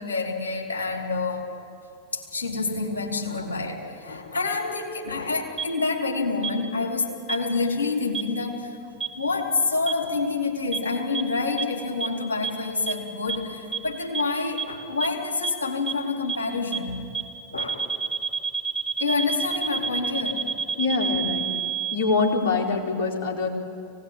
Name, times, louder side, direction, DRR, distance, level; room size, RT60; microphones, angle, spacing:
voice 1, 0.0-1.5 2.1-8.8 9.2-17.0 17.5-17.8 19.0-21.1, left 3 dB, 70° left, 0 dB, 4.2 m, -28 dB
sound 1, 5.6-5.7 6.4-6.5 7.3-7.4 8.1-8.2 9.0-9.1 9.9-10.0 10.7-10.8 11.1-11.2 11.6-11.7 12.0-12.1 12.4-12.5 12.9-13.0 13.3-13.4 13.7-13.8 14.1-14.2 14.6-14.7 15.0-15.1 15.4-15.5 15.9-16.0 16.3-16.4 16.7-16.8 17.1-17.2 17.6-22.0, right 6 dB, 5° right, 6.0 m, -27 dB
voice 2, 20.8-21.5 21.9-23.5, left 4 dB, 50° left, 0 dB, 4.3 m, -24 dB
24.0 x 18.5 x 9.9 m, 2.4 s
figure-of-eight pair, 90°, 0 cm